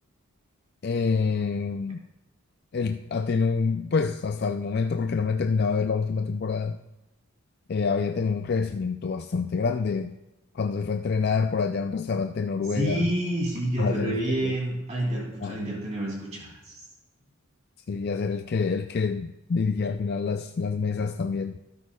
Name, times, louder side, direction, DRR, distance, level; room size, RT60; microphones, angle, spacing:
voice 1, 0.8-2.0 2.7-6.8 7.7-10.2 10.5-13.1 13.8-14.5 15.4-15.6 17.9-21.6, left 5 dB, 45° left, 6 dB, 0.4 m, -27 dB
voice 2, 12.7-16.8, right 1 dB, 30° right, -3 dB, 2.8 m, -28 dB
13.5 x 12.5 x 2.3 m, 0.99 s
head